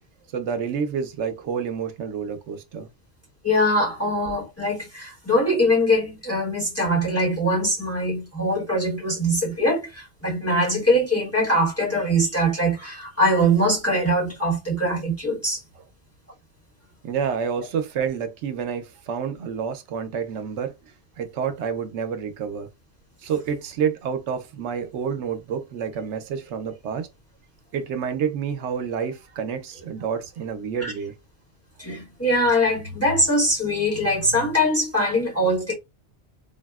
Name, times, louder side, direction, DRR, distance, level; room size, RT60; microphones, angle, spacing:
voice 1, 0.3-2.9 17.0-22.7 23.2-27.1 27.7-31.1, right 7 dB, 85° right, 0.9 m, -29 dB
voice 2, 3.4-15.6 30.8-30.9 31.8-35.7, equal, 15° left, 0.9 m, -22 dB
3.6 x 2.0 x 2.3 m
omnidirectional pair, 1.2 m